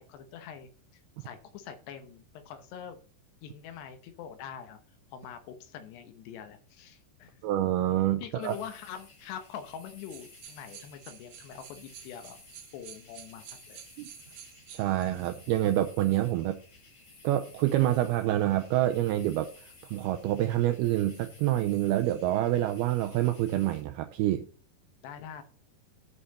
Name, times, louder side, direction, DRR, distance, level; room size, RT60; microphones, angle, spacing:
voice 1, 0.0-3.0 3.4-4.8 5.1-7.4 8.2-12.4 12.7-13.8 25.0-25.4, left 8 dB, 75° left, 3.0 m, -44 dB
voice 2, 7.4-8.6 14.0-14.1 14.7-16.6 17.2-19.5 19.9-24.5, right 13 dB, 85° right, 2.2 m, -27 dB
sound 1, 8.4-23.8, left 3 dB, 40° left, 1.7 m, -56 dB
sound 2, 10.0-15.4 16.2-16.3 21.7-22.3, right 10 dB, 70° right, 2.5 m, -51 dB
13.0 x 5.6 x 4.1 m
omnidirectional pair, 5.1 m